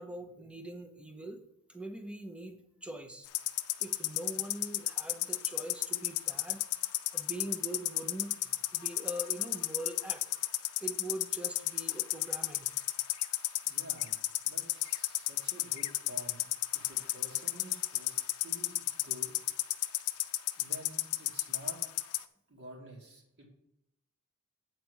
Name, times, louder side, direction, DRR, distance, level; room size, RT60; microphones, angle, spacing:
voice 1, 0.0-1.4 1.7-3.3 3.8-6.7 7.1-10.2 10.8-12.8, right 1 dB, 5° right, 6 dB, 0.7 m, -43 dB
sound 1, 3.2-22.2, left 17 dB, 80° left, 0.5 m, -31 dB
voice 2, 13.7-16.5 16.7-19.3 20.6-21.8 22.5-23.5, right 1 dB, 55° right, 0 dB, 2.2 m, -50 dB
8.4 x 4.5 x 6.2 m, 0.77 s
head